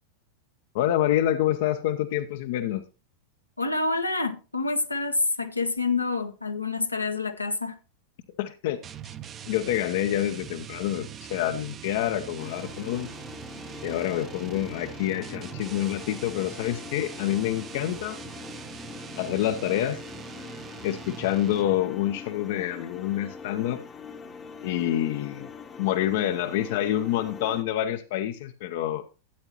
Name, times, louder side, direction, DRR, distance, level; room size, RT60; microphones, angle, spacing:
voice 1, 0.7-2.8 8.4-8.8 9.5-13.1 13.8-18.2 19.2-20.0 20.8-23.8 24.6-25.5 25.8-29.0, left 12 dB, 50° left, 0.7 m, -27 dB
voice 2, 3.6-7.8, left 3 dB, 85° left, 1.0 m, -27 dB
sound 1, 8.8-21.9, right 9 dB, 30° right, 0.7 m, -42 dB
sound 2, 12.4-27.6, left 5 dB, 20° left, 0.9 m, -43 dB
12.5 x 8.9 x 3.0 m
figure-of-eight pair, 90°, 0 cm